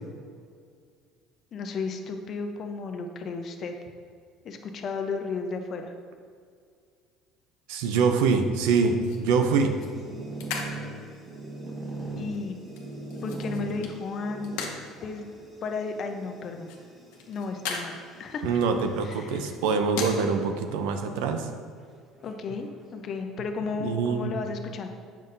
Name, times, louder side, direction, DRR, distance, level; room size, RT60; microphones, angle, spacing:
voice 1, 1.5-3.7 4.4-5.9 12.2-12.6 13.2-14.6 15.0-15.3 15.6-16.7 17.3-18.5 19.0-19.5 22.2-24.9, left 4 dB, 45° left, 5 dB, 0.6 m, -33 dB
voice 2, 7.7-9.8 18.4-21.5 23.8-24.3, right 5 dB, 85° right, 6 dB, 0.5 m, -24 dB
sound 1, 8.7-20.2, left 5 dB, 85° left, 0.8 m, -41 dB
sound 2, 9.6-19.1 19.9-20.4 20.8-20.9 21.2-21.3 22.1-23.3, right 2 dB, 20° right, 1.3 m, -41 dB
7.1 x 5.5 x 2.6 m, 2.1 s
cardioid pair, 110°, 0 cm